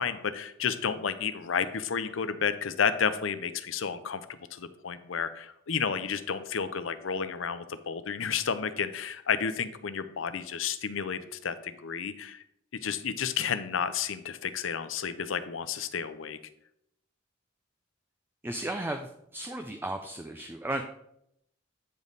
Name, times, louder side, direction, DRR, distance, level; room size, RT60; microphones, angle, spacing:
voice 1, 0.0-12.4 12.7-16.4, left 6 dB, 80° left, 12 dB, 0.6 m, -31 dB
voice 2, 18.4-20.8, right 1 dB, 10° right, 5 dB, 0.4 m, -35 dB
8.8 x 5.2 x 4.0 m, 0.75 s
head